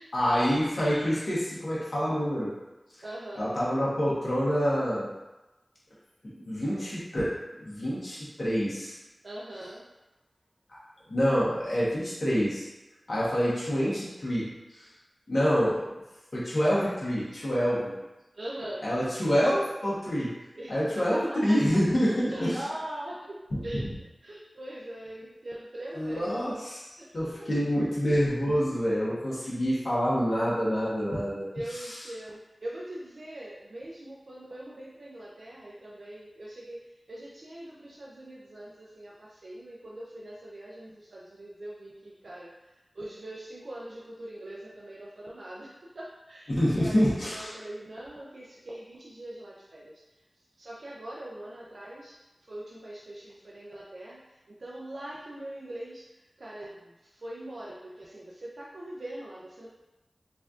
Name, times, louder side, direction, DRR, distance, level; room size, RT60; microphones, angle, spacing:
voice 1, 0.1-2.5 3.3-5.1 6.4-9.0 11.1-12.7 13.1-14.9 15.3-15.9 16.3-17.9 18.8-20.3 20.7-22.6 25.9-31.5 46.6-47.5, equal, 55° left, -8 dB, 1.1 m, -27 dB
voice 2, 3.0-3.6 9.2-9.9 18.3-18.9 20.5-21.6 22.1-23.4 23.6-23.9 24.2-26.5 27.0-27.5 29.4-29.6 31.5-50.0 50.6-52.2 52.5-59.7, right 1 dB, 75° right, -5 dB, 0.4 m, -42 dB
4.2 x 2.5 x 2.4 m, 1.0 s
wide cardioid pair, 70°, 0 cm